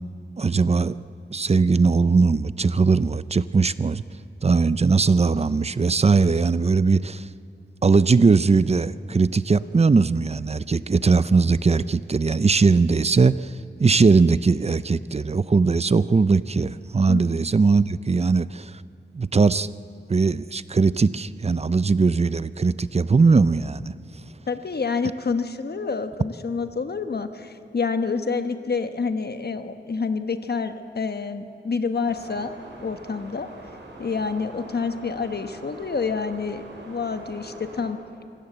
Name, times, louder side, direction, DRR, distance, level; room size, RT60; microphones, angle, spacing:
voice 1, 0.4-1.0 1.3-4.0 4.4-7.3 7.8-18.7 19.2-19.7 20.1-23.9, right 4 dB, 35° right, 16 dB, 0.5 m, -20 dB
voice 2, 24.5-32.5 32.8-33.5 34.0-38.0, left 4 dB, 60° left, 9 dB, 1.2 m, -28 dB
sound 1, 32.1-37.9, right 2 dB, 75° right, 4.6 m, -43 dB
25.5 x 17.0 x 7.8 m, 2.4 s
wide cardioid pair, 100°, 19 cm